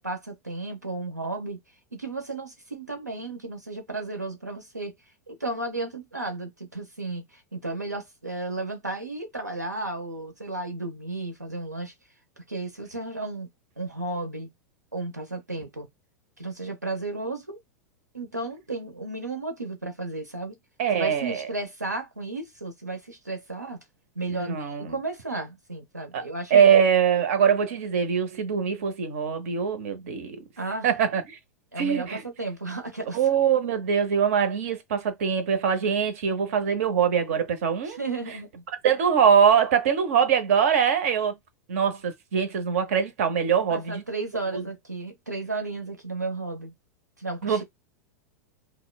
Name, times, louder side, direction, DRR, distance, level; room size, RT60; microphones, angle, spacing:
voice 1, 0.0-1.6 2.0-4.9 5.3-11.9 12.5-13.5 13.8-14.5 14.9-15.9 16.4-17.6 18.1-20.6 20.9-23.8 24.2-26.7 30.6-30.9 31.7-33.2 37.9-38.6 43.6-46.7 47.2-47.6, right 2 dB, 90° right, 0.8 m, -33 dB
voice 2, 20.8-21.5 24.4-24.9 26.1-26.2 26.5-30.4 30.8-31.2 31.8-32.2 33.1-38.0 38.8-41.4 41.7-44.0 44.5-44.6 47.4-47.6, right 7 dB, 55° right, 0.8 m, -23 dB
5.6 x 2.1 x 2.3 m
figure-of-eight pair, 90°, 9 cm